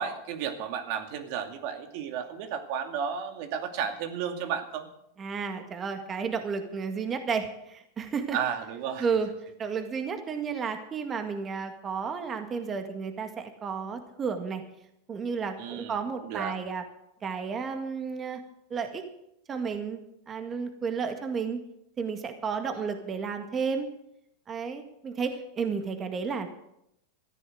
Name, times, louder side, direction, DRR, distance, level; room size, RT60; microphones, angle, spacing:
voice 1, 0.0-4.9 8.3-9.1 15.6-16.0 16.2-16.5, right 7 dB, 60° right, 6 dB, 2.4 m, -33 dB
voice 2, 5.2-8.4 9.0-9.3 9.6-14.6 15.1-16.8 17.2-18.4 18.7-19.0 19.5-21.6 22.0-23.9 24.5-26.5, right 5 dB, 25° right, 6 dB, 1.9 m, -32 dB
14.5 x 9.8 x 7.9 m, 0.80 s
supercardioid pair, 120°, 0 cm